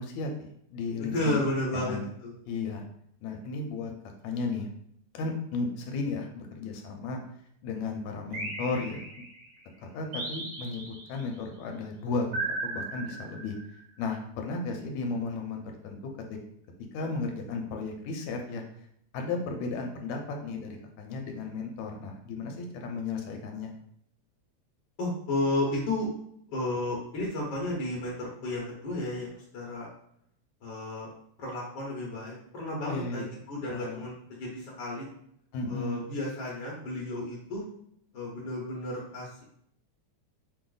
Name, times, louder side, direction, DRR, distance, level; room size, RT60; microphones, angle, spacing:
voice 1, 0.0-1.4 1.7-2.0 2.5-2.8 3.2-3.9 4.2-4.7 5.1-7.2 7.6-9.0 9.9-13.6 14.0-16.1 16.9-18.6 19.1-23.7 32.9-33.3 33.7-34.1 35.5-36.1, left 3 dB, 80° left, 2 dB, 2.0 m, -34 dB
voice 2, 1.0-2.0 2.2-2.3 25.0-26.1 26.5-29.9 30.6-31.1 31.4-35.1 35.7-37.6 38.1-39.4, left 1 dB, 60° left, -4 dB, 1.3 m, -32 dB
sound 1, 8.3-9.5 10.1-11.3 12.3-13.8, right 2 dB, 80° right, 2.5 m, -36 dB
5.9 x 2.0 x 3.8 m, 0.70 s
omnidirectional pair, 3.3 m